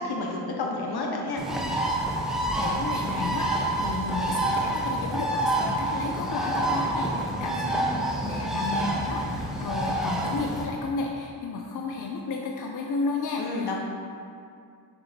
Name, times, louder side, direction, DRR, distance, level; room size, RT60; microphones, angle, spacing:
voice 1, 0.0-1.4 13.4-13.7, left 2 dB, 70° left, 0 dB, 1.2 m, -30 dB
Bird, 1.4-10.6, right 1 dB, ahead, 1.1 m, -28 dB
voice 2, 2.6-13.7, left 3 dB, 50° left, 1 dB, 0.6 m, -33 dB
6.8 x 6.2 x 2.9 m, 2.4 s
cardioid pair, 75°, 40 cm